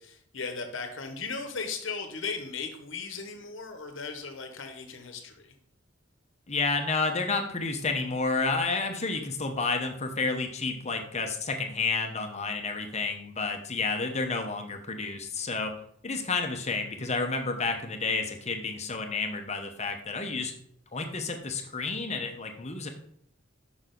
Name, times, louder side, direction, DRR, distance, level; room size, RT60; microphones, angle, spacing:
voice 1, 0.0-5.5, left 4 dB, 70° left, 6 dB, 1.2 m, -37 dB
voice 2, 6.5-15.7 16.0-20.5 20.9-22.9, left 4 dB, 35° left, 4 dB, 1.0 m, -30 dB
6.4 x 6.1 x 3.9 m, 0.66 s
head